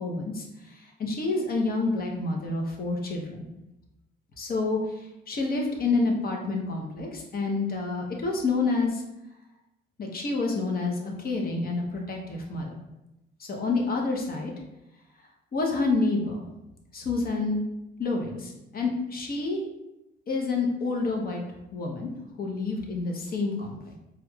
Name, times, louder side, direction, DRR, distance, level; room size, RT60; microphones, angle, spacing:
voice 1, 0.0-3.5 4.4-9.0 10.0-12.8 13.4-14.5 15.5-16.4 16.9-17.6 18.0-19.6 20.3-21.4 21.7-22.1 22.4-24.0, left 3 dB, 50° left, 1 dB, 0.8 m, -28 dB
4.6 x 2.4 x 2.3 m, 0.92 s
cardioid pair, 90°, 20 cm